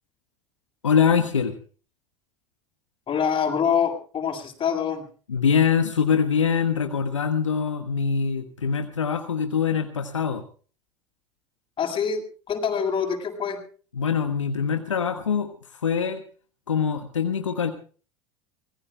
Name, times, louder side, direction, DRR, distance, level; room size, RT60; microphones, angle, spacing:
voice 1, 0.8-1.5 5.3-10.4 13.9-15.5 15.8-16.2 16.7-17.7, left 6 dB, 85° left, 7 dB, 1.4 m, -23 dB
voice 2, 3.1-5.0 11.8-12.2 12.5-13.6, left 7 dB, 35° left, 2 dB, 7.0 m, -25 dB
25.0 x 20.5 x 2.2 m, 0.40 s
hypercardioid pair, 80°, 16 cm